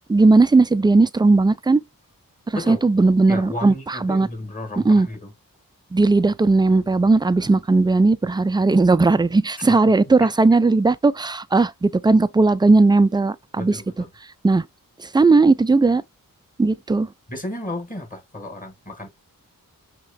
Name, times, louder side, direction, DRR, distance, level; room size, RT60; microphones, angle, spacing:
voice 1, 0.1-1.8 2.5-4.3 4.8-5.1 5.9-13.8 14.4-14.6 15.0-16.0 16.6-17.1, right 3 dB, 15° right, 0.3 m, -17 dB
voice 2, 3.3-5.3 9.7-9.8 10.2-10.3 13.6-14.1 17.3-19.1, left 1 dB, 25° left, 1.9 m, -33 dB
5.6 x 3.0 x 2.2 m
wide cardioid pair, 70°, 35 cm